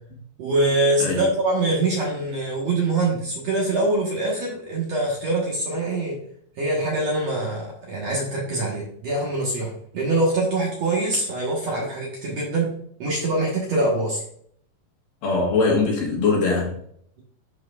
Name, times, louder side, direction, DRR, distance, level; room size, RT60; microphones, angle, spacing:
voice 1, 0.4-6.2 6.6-12.7 13.0-14.2, right 2 dB, 55° right, 2.1 m, -24 dB
voice 2, 15.2-16.7, left 3 dB, 65° left, 3.1 m, -21 dB
11.5 x 4.7 x 2.5 m
omnidirectional pair, 4.5 m